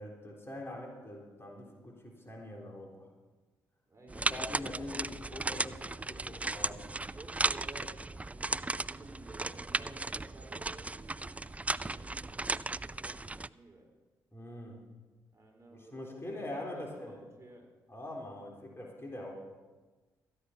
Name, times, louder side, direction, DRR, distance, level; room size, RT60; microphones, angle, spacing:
voice 1, 0.0-3.1 4.1-6.8 14.3-14.8 15.7-17.2 17.9-19.3, left 1 dB, 25° left, -1 dB, 3.6 m, -43 dB
voice 2, 3.9-4.3 6.9-13.9 15.3-17.7, right 2 dB, 30° right, 0 dB, 3.9 m, -53 dB
sound 1, 4.1-13.5, right 2 dB, 15° right, 0.3 m, -36 dB
13.5 x 10.0 x 5.8 m, 1.3 s
hypercardioid pair, 40°, 10 cm